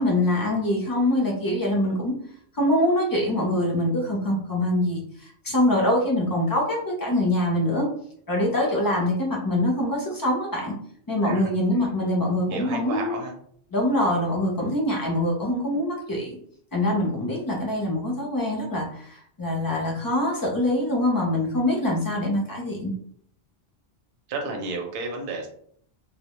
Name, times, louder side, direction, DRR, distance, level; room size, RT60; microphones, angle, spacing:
voice 1, 0.0-2.1 2.6-5.0 5.4-7.9 8.3-10.7 11.1-13.2 13.7-16.3 16.7-22.9, left 1 dB, 30° left, -2 dB, 0.5 m, -24 dB
voice 2, 12.5-13.3 24.3-25.5, right 3 dB, 65° right, 2 dB, 0.7 m, -32 dB
2.1 x 2.1 x 2.8 m, 0.62 s
omnidirectional pair, 1.1 m